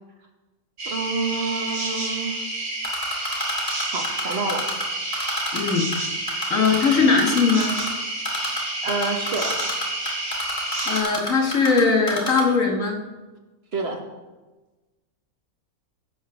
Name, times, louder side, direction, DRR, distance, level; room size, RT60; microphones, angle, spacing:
voice 1, 0.8-2.4 3.9-4.7 8.8-9.6 13.7-14.0, right 3 dB, 45° right, 3 dB, 1.3 m, -28 dB
sound 1, 0.8-11.0, right 2 dB, 60° right, 2.1 m, -29 dB
Typing, 2.8-4.8 5.1-6.0 6.3-7.9 8.2-8.6 8.9-11.8 12.1-12.4, left 2 dB, 25° left, 2.7 m, -28 dB
voice 2, 5.5-5.9 6.5-7.7 10.9-13.0, left 4 dB, 60° left, 1 dB, 1.8 m, -20 dB
15.5 x 5.2 x 6.1 m, 1.2 s
omnidirectional pair, 1.6 m